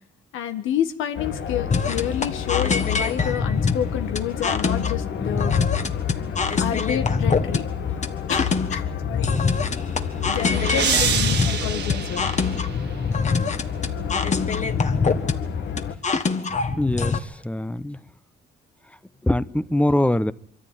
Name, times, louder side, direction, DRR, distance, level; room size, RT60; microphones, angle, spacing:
voice 1, 0.3-5.6 6.6-7.7 8.3-9.3 10.3-12.3, left 10 dB, 85° left, 8 dB, 1.7 m, -29 dB
sound 1, 1.2-15.9, left 8 dB, 65° left, 1.9 m, -29 dB
sound 2, 1.7-17.2, left 4 dB, 35° left, 1.7 m, -24 dB
sound 3, 9.7-13.1, right 7 dB, 60° right, 1.8 m, -27 dB
voice 2, 16.8-18.0 19.2-20.3, left 1 dB, 5° left, 16 dB, 0.8 m, -23 dB
23.5 x 14.0 x 9.2 m, 0.64 s
cardioid pair, 90°, 20 cm